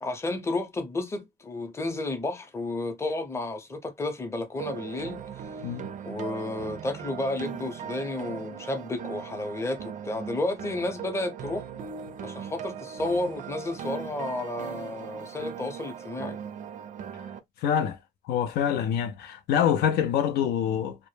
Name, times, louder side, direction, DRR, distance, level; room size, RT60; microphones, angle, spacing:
voice 1, 0.0-5.2 6.0-11.7 12.2-16.4, left 2 dB, 15° left, 0.6 m, -32 dB
sound 1, 4.6-17.4, right 7 dB, 50° right, 0.4 m, -39 dB
voice 2, 17.6-18.0 18.3-21.0, left 9 dB, 70° left, 0.5 m, -25 dB
2.1 x 2.0 x 3.1 m
cardioid pair, 110°, 17 cm